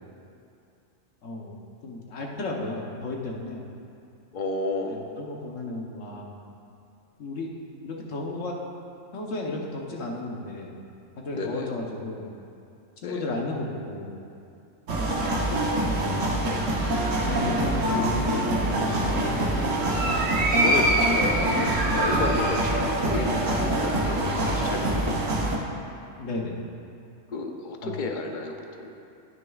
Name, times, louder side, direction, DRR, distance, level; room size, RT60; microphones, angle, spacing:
voice 1, 1.2-1.5 1.8-3.6 4.9-6.4 7.2-7.5 7.8-8.5 9.1-10.8 11.2-12.2 13.0-14.1 14.9-15.2 15.8-16.2 17.2-19.8 26.2-26.6 27.8-28.0, left 2 dB, 75° left, -1 dB, 1.3 m, -33 dB
voice 2, 4.3-5.0 11.3-11.7 13.0-13.2 15.5-15.6 20.6-21.5 21.9-25.5 27.3-28.9, left 3 dB, 45° left, 3 dB, 0.8 m, -32 dB
sound 1, 14.9-25.6, right 1 dB, 70° right, 1.4 m, -24 dB
18.5 x 6.4 x 2.4 m, 2.6 s
omnidirectional pair, 1.3 m